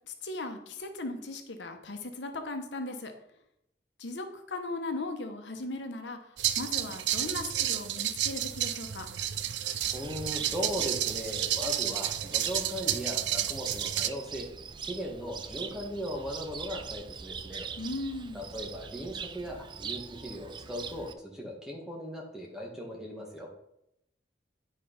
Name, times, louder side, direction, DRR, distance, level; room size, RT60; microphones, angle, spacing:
voice 1, 0.1-3.1 4.0-6.2 6.6-9.1 17.8-18.5, left 2 dB, 85° left, 6 dB, 1.0 m, -37 dB
sound 1, 6.4-14.1, right 11 dB, 80° right, 0.5 m, -31 dB
Cricket, 9.8-21.1, right 6 dB, 25° right, 0.4 m, -42 dB
voice 2, 9.9-14.5 14.8-17.7 18.3-23.5, equal, 5° right, -1 dB, 1.6 m, -38 dB
10.0 x 4.6 x 5.1 m, 0.81 s
head